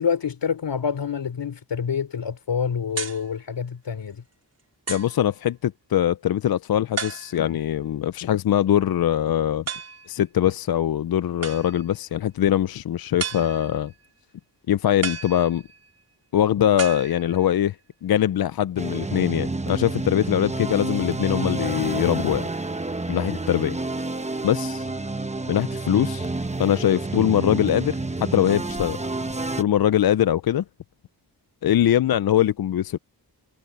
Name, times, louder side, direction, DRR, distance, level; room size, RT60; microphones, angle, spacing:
voice 1, 0.0-4.2, left 7 dB, 85° left, 3.4 m, -27 dB
sound 1, 2.9-3.3 4.0-4.1 4.9-5.2 7.0-7.6 9.7-10.1 11.4-11.9 13.2-13.9 15.0-15.9 16.8-17.6, right 5 dB, 35° right, 4.5 m, -33 dB
voice 2, 4.9-9.6 10.1-13.9 14.7-15.6 16.3-17.8 18.0-22.5 23.1-23.8 24.4-24.9 25.5-26.3 26.6-29.0 29.6-30.6 31.6-33.0, left 11 dB, 60° left, 0.5 m, -22 dB
sound 2, 18.8-29.6, right 2 dB, 15° right, 1.0 m, -29 dB
wide cardioid pair, 115°, 41 cm